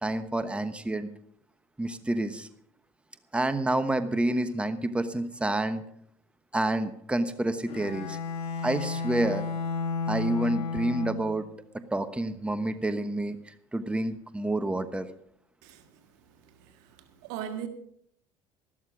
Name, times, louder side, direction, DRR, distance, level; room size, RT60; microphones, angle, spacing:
voice 1, 0.0-1.1 1.8-2.5 3.3-5.8 6.5-8.2 8.6-9.4 10.1-11.5 11.9-15.1, right 1 dB, 10° right, 11 dB, 1.1 m, -28 dB
Bowed string instrument, 7.7-11.5, left 4 dB, 65° left, 2.2 m, -32 dB
voice 2, 17.2-17.7, right 9 dB, 75° right, 7 dB, 1.7 m, -36 dB
13.0 x 12.5 x 5.0 m, 0.68 s
supercardioid pair, 80°, 11 cm